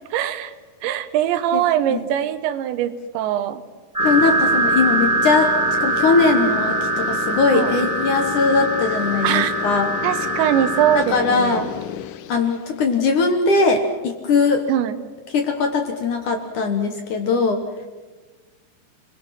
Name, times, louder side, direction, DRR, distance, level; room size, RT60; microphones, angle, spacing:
voice 1, 0.1-0.5 0.8-3.6 7.5-7.8 9.2-9.5 10.0-11.7 14.7-15.0, right 11 dB, 85° right, 11 dB, 3.3 m, -22 dB
sound 1, 3.9-11.0, right 2 dB, 5° right, 2.0 m, -22 dB
sound 2, 4.0-12.8, left 11 dB, 75° left, 2.7 m, -32 dB
voice 2, 4.0-5.5 5.8-9.9 10.9-11.7 12.3-14.6 15.3-17.6, left 4 dB, 60° left, 5 dB, 2.3 m, -20 dB
29.5 x 21.0 x 5.9 m, 1.3 s
omnidirectional pair, 5.1 m